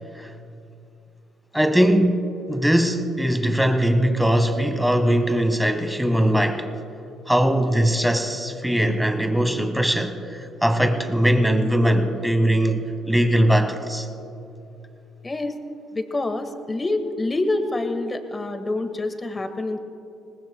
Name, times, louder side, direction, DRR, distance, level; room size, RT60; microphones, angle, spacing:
voice 1, 1.5-2.2 2.5-6.7 7.3-14.1, equal, 5° right, 1.4 m, -20 dB
voice 2, 15.2-15.6 15.9-19.8, left 2 dB, 25° left, 1.4 m, -26 dB
21.5 x 19.0 x 2.2 m
hypercardioid pair, 55°, 0 cm